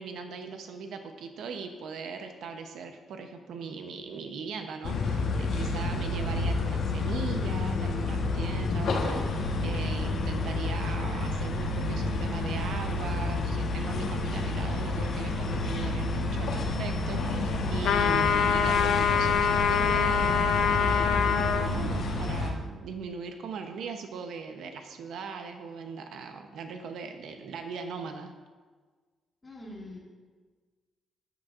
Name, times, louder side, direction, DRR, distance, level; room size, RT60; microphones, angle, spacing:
voice 1, 0.0-28.3, right 5 dB, 70° right, 6 dB, 0.8 m, -39 dB
sound 1, 4.8-22.5, left 2 dB, 60° left, 1.2 m, -29 dB
sound 2, 17.8-21.7, left 7 dB, 90° left, 0.6 m, -25 dB
voice 2, 29.4-30.0, left 1 dB, 15° left, -5 dB, 2.2 m, -43 dB
13.0 x 9.3 x 2.5 m, 1.4 s
cardioid pair, 175°, 0 cm